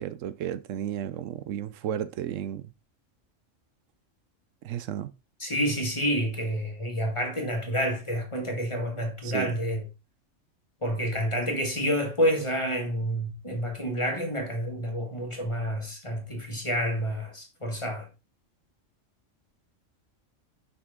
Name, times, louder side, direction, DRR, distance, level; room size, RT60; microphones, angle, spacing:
voice 1, 0.0-2.6 4.6-5.1 9.2-9.6, right 10 dB, 80° right, 0.9 m, -33 dB
voice 2, 5.4-9.8 10.8-18.1, equal, 25° left, 1.8 m, -29 dB
6.2 x 5.7 x 3.5 m
omnidirectional pair, 1.3 m